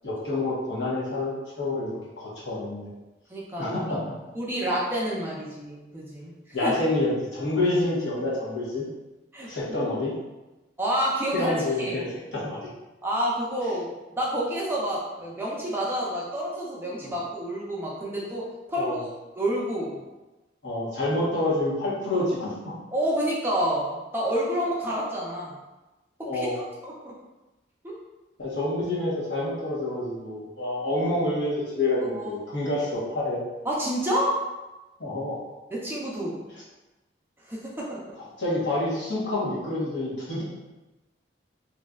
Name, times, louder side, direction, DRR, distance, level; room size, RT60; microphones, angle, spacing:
voice 1, 0.0-2.8 3.6-4.1 6.5-8.9 9.4-10.2 11.3-12.7 17.0-17.1 18.8-19.1 20.6-22.7 26.2-26.6 28.4-33.4 35.0-35.4 38.4-40.4, left 2 dB, 80° left, -7 dB, 1.1 m, -28 dB
voice 2, 3.3-3.8 4.4-6.7 9.3-9.5 10.8-11.5 11.8-12.0 13.0-19.1 19.4-20.0 22.9-25.6 26.3-26.5 26.8-27.1 27.8-27.9 32.1-32.3 33.6-34.4 35.7-36.3 37.5-38.2, equal, 10° right, -5 dB, 0.5 m, -29 dB
3.1 x 2.6 x 2.3 m, 1.1 s
head